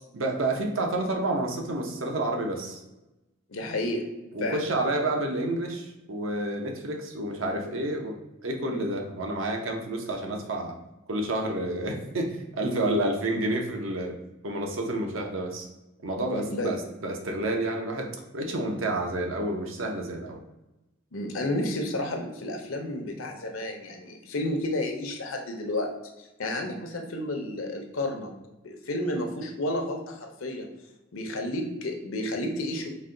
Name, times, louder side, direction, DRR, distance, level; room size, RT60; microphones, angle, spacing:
voice 1, 0.1-2.8 4.3-8.1 8.4-10.8 11.1-14.1 14.4-15.7 16.0-20.4, right 1 dB, 80° right, 2 dB, 0.7 m, -29 dB
voice 2, 3.5-4.0 4.4-4.6 8.6-8.8 12.6-12.8 16.3-16.7 21.1-25.9 26.2-28.3 28.6-30.7 31.1-32.9, left 1 dB, 85° left, 3 dB, 0.7 m, -31 dB
4.1 x 2.2 x 3.7 m, 0.97 s
head